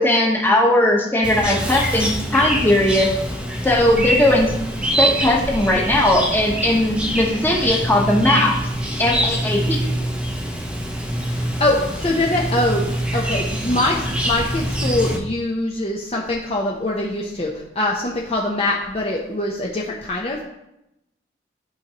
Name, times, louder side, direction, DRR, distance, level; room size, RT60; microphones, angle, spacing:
voice 1, 0.0-3.1 3.6-4.5 5.0-8.5 9.0-9.8, left 1 dB, 10° left, -1 dB, 1.1 m, -18 dB
Chirp tweet, 1.2-15.2, equal, 5° right, 0.7 m, -24 dB
voice 2, 11.1-12.9 13.1-20.4, left 1 dB, 30° left, -2 dB, 0.7 m, -23 dB
11.0 x 4.5 x 2.9 m, 0.87 s
head